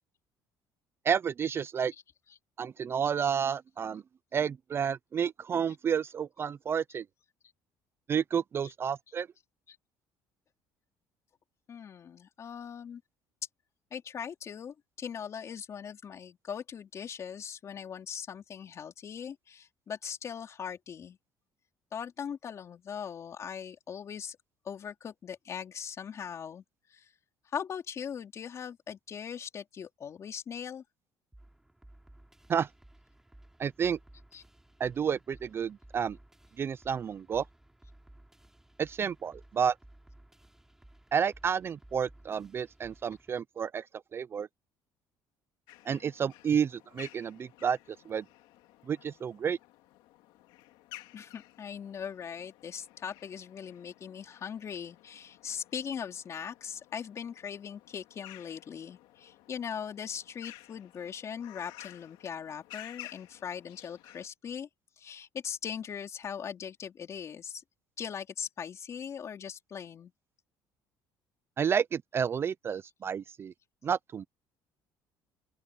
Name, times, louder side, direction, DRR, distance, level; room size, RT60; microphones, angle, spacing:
voice 1, 1.0-1.9 2.6-4.0 4.3-7.0 8.1-9.3 32.5-32.7 33.6-34.0 34.8-36.2 36.6-37.5 38.8-39.8 41.1-43.9 44.1-44.5 45.8-48.2 48.9-49.6 71.6-73.5 73.8-74.2, right 7 dB, 30° right, 0.4 m, -30 dB
voice 2, 11.7-13.0 13.9-21.2 21.9-24.4 24.6-26.6 26.9-27.1 27.5-30.8 34.3-34.4 51.1-64.7 65.0-67.6 68.0-70.1, left 7 dB, 40° left, 4.0 m, -40 dB
sound 1, 31.3-43.3, right 1 dB, 5° right, 3.4 m, -57 dB
sound 2, 45.7-64.3, left 17 dB, 90° left, 2.1 m, -54 dB
open air
cardioid pair, 135°, 8 cm